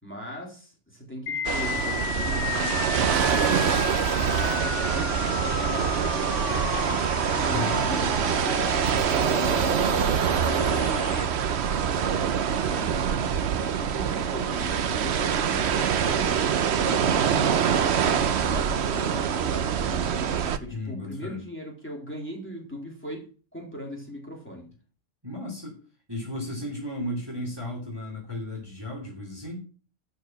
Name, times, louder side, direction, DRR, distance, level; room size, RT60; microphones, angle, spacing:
voice 1, 0.0-7.0 7.4-10.4 10.8-11.5 11.9-13.3 13.6-16.4 16.8-20.1 20.6-23.2 23.5-24.7, equal, 10° left, -2 dB, 3.6 m, -39 dB
sound 1, 1.3-11.3, left 8 dB, 70° left, 1.1 m, -33 dB
sound 2, 1.4-20.6, right 8 dB, 60° right, 1.0 m, -25 dB
voice 2, 7.5-7.8 20.7-21.4 25.2-25.8 26.1-29.6, left 1 dB, 20° right, 0 dB, 2.8 m, -34 dB
Ringtone, 11.5-13.6 14.4-17.7, right 6 dB, 85° right, 2.0 m, -47 dB
12.0 x 4.8 x 7.6 m, 0.39 s
omnidirectional pair, 1.3 m